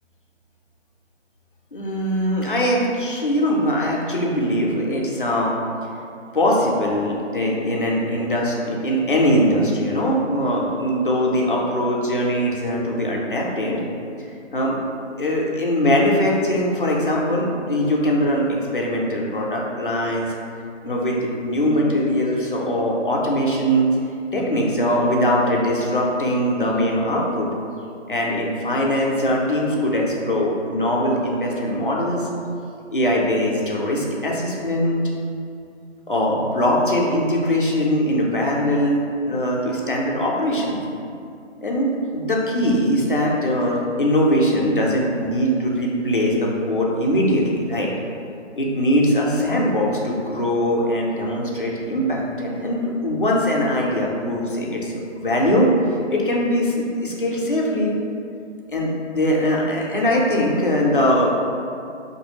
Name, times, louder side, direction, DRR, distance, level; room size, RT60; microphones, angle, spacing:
voice 1, 1.7-5.6 6.3-13.8 14.5-14.8 15.2-20.3 20.8-23.9 24.3-27.5 28.1-32.3 32.9-35.0 36.1-39.0 39.2-40.8 41.6-47.9 48.6-55.7 56.1-57.9 58.7-61.5, equal, 50° left, -3 dB, 0.4 m, -21 dB
2.7 x 2.5 x 2.8 m, 2.5 s
figure-of-eight pair, 175°, 36 cm